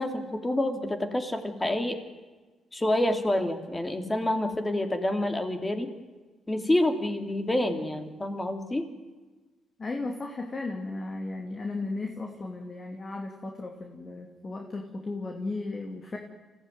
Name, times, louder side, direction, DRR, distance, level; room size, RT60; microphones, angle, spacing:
voice 1, 0.0-2.0 2.7-5.9 6.5-8.8, left 1 dB, 15° left, 6 dB, 3.0 m, -28 dB
voice 2, 9.8-16.2, left 3 dB, 35° left, 3 dB, 2.7 m, -35 dB
24.5 x 16.0 x 9.4 m, 1.3 s
cardioid pair, 90°, 0 cm